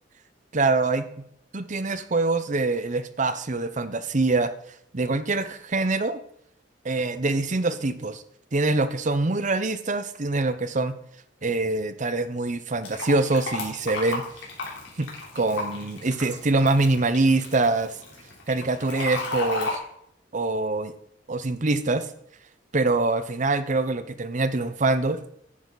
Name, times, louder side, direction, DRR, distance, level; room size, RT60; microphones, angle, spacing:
voice 1, 0.5-1.1 1.5-4.5 4.9-6.2 6.8-8.2 8.5-10.9 11.4-14.2 15.0-15.1 15.3-18.0 18.5-19.8 20.3-20.9 21.3-22.1 22.7-25.2, right 3 dB, 45° right, 12 dB, 0.8 m, -24 dB
Fill (with liquid), 12.8-19.8, left 3 dB, 75° left, 3.5 m, -34 dB
9.8 x 9.8 x 4.0 m, 0.70 s
head